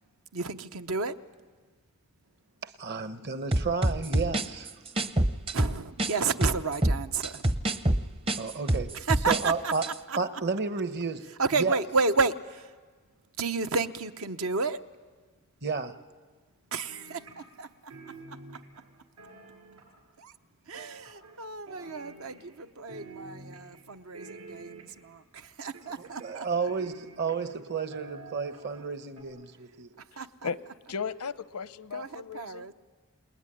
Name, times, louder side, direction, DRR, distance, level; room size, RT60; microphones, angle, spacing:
voice 1, 0.3-1.1 5.5-7.4 9.1-9.7 10.1-10.2 11.4-12.6 13.4-14.8 16.7-17.2 17.6-17.7 20.2-20.3 20.7-26.5 30.2-30.5 31.9-32.7, right 4 dB, 70° right, 9 dB, 0.9 m, -31 dB
voice 2, 2.6-4.7 8.4-8.9 9.3-9.9 10.1-11.2 11.5-11.8 15.6-15.9 26.0-29.9, right 4 dB, 50° right, 10 dB, 1.1 m, -31 dB
sound 1, 3.5-6.1 6.4-9.5 9.7-9.9, right 1 dB, 25° right, 0.7 m, -26 dB
sound 2, 16.9-17.6 17.9-20.1 20.7-21.4 21.7-22.6 22.9-23.8 24.1-25.1 25.7-27.6 27.9-28.8 29.2-29.3, right 3 dB, 90° right, 7.3 m, -48 dB
voice 3, 30.1-30.6 30.9-32.7, left 6 dB, 85° left, 14 dB, 0.8 m, -36 dB
28.0 x 20.5 x 10.0 m, 1.5 s
head